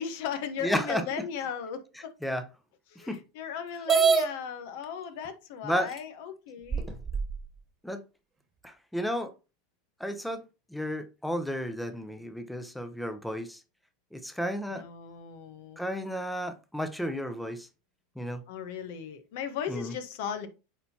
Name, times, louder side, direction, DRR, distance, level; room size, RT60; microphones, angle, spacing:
voice 1, 0.0-2.1 2.9-6.9 14.7-15.8 18.5-20.5, left 7 dB, 65° left, 1.1 m, -37 dB
voice 2, 0.6-1.0 2.2-2.4 3.1-3.2 5.6-5.9 7.8-8.0 8.6-9.3 10.0-10.4 10.7-13.6 14.1-14.8 15.8-17.7 18.2-18.4 19.7-19.9, equal, 5° left, 0.8 m, -32 dB
sound 1, 3.9-4.3 5.3-5.4 6.0-6.1 6.7-7.4, right 5 dB, 25° right, 1.4 m, -23 dB
8.7 x 4.1 x 2.8 m
hypercardioid pair, 90°, 0 cm